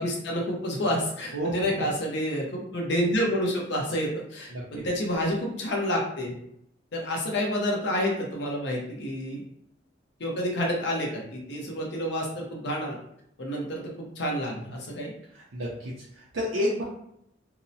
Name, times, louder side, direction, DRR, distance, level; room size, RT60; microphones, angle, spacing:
voice 1, 0.0-6.4 6.9-9.4 10.2-13.0 13.4-15.1, equal, 60° left, -1 dB, 0.7 m, -29 dB
voice 2, 1.3-1.8 4.5-4.6 15.4-16.8, equal, 85° right, -5 dB, 0.5 m, -30 dB
2.8 x 2.0 x 2.6 m, 0.73 s
head